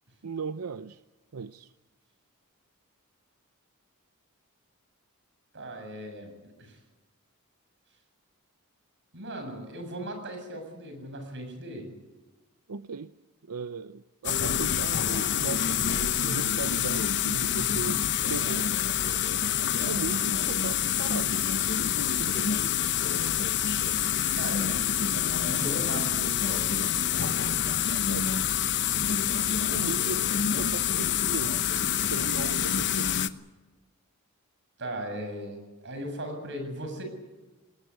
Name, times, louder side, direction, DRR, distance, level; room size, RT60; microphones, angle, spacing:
voice 1, 0.2-1.0 1.3-1.7 12.7-13.1 13.4-18.0 18.3-18.7 19.8-21.4 22.0-22.6 28.1-28.3 29.7-33.1, right 5 dB, 90° right, 12 dB, 0.7 m, -37 dB
voice 2, 5.5-6.8 9.1-11.9 16.1-16.2 24.4-27.5 34.8-37.0, right 1 dB, 55° right, 5 dB, 7.4 m, -38 dB
sound 1, 14.2-33.3, left 9 dB, 55° left, 1.0 m, -27 dB
20.0 x 20.0 x 9.5 m, 1.2 s
head